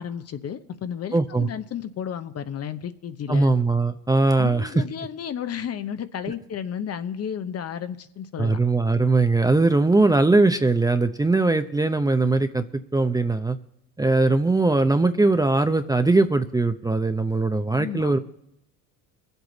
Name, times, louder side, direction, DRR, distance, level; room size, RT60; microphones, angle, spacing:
voice 1, 0.0-3.5 4.4-8.6 17.7-18.2, left 8 dB, 40° left, 11 dB, 0.9 m, -32 dB
voice 2, 1.1-1.5 3.3-4.8 8.4-13.6 14.0-18.2, right 3 dB, 10° right, 8 dB, 0.6 m, -20 dB
23.0 x 8.1 x 4.0 m, 0.79 s
supercardioid pair, 80°, 38 cm